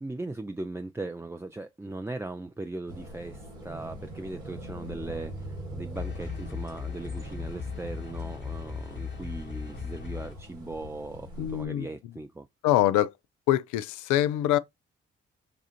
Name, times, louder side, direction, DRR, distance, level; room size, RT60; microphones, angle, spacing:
voice 1, 0.0-12.5, right 2 dB, 10° right, 0.4 m, -39 dB
sound 1, 2.9-11.7, right 1 dB, 85° right, 1.5 m, -42 dB
sound 2, 6.0-10.4, left 6 dB, 35° left, 1.0 m, -37 dB
voice 2, 11.4-11.9 12.6-13.1 13.5-14.6, left 13 dB, 70° left, 0.5 m, -24 dB
5.0 x 2.4 x 2.8 m
hypercardioid pair, 40°, 31 cm